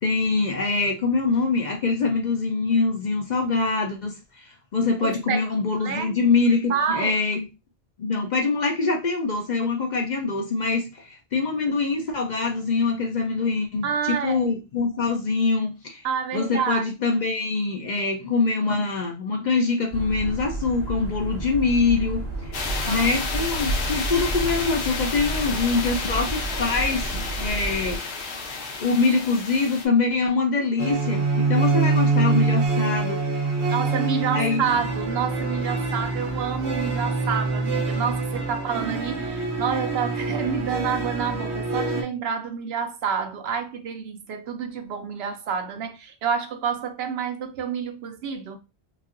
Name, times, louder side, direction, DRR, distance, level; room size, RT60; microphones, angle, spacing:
voice 1, 0.0-7.4 8.0-16.1 16.3-22.6 22.9-28.0 28.8-33.2 34.3-34.7, left 4 dB, 55° left, 0.5 m, -24 dB
voice 2, 5.0-5.5 5.8-6.2 6.7-7.2 13.8-14.6 16.0-16.8 22.8-23.1 33.7-48.6, right 7 dB, 70° right, 0.8 m, -28 dB
sound 1, 19.9-28.0, right 2 dB, 25° left, 1.7 m, -32 dB
sound 2, 22.5-29.8, left 3 dB, 75° left, 1.0 m, -30 dB
sound 3, 30.8-42.0, right 3 dB, 90° right, 1.1 m, -25 dB
3.0 x 2.6 x 2.5 m
omnidirectional pair, 1.1 m